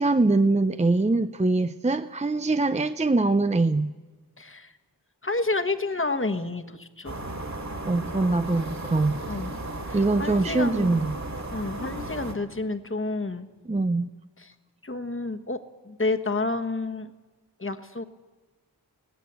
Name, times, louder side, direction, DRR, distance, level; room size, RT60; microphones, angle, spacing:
voice 1, 0.0-3.9 7.9-9.2 9.9-11.2 13.7-14.1, right 2 dB, 15° right, 11 dB, 0.6 m, -23 dB
voice 2, 4.4-4.7 5.2-7.2 9.3-9.5 9.9-11.0 11.5-13.5 14.4-14.5 14.8-15.6 15.8-17.1 17.6-18.0, left 3 dB, 30° left, 7 dB, 1.4 m, -30 dB
sound 1, 7.0-12.3, right 2 dB, 40° right, 3.0 m, -35 dB
22.5 x 17.5 x 8.2 m, 1.3 s
wide cardioid pair, 55°, 42 cm